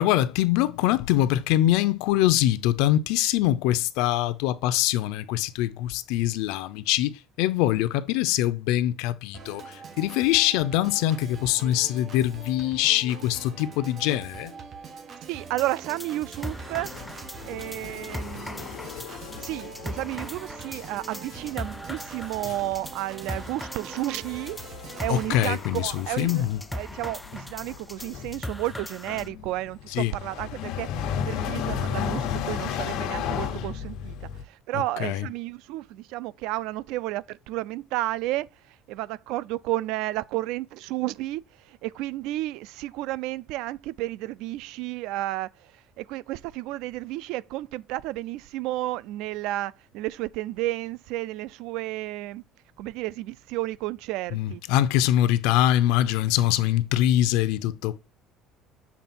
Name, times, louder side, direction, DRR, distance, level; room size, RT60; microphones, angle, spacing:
voice 1, 0.0-14.5 25.1-26.6 29.9-30.2 34.7-35.3 54.3-58.0, left 13 dB, 90° left, 0.6 m, -24 dB
Organ, 9.3-25.3, right 5 dB, 35° right, 1.2 m, -43 dB
voice 2, 15.3-16.9 17.4-18.7 19.4-24.6 25.0-26.5 26.7-52.4 52.8-54.6, right 16 dB, 75° right, 0.3 m, -32 dB
sound 1, 15.6-29.3, left 1 dB, 5° left, 0.4 m, -40 dB
sound 2, 16.8-20.4 20.7-21.0 21.3-21.6 22.0-22.1 22.4-22.7 23.3-23.4 23.7-34.4, left 8 dB, 70° left, 1.1 m, -35 dB
7.3 x 3.8 x 4.3 m
cardioid pair, 155°, 0 cm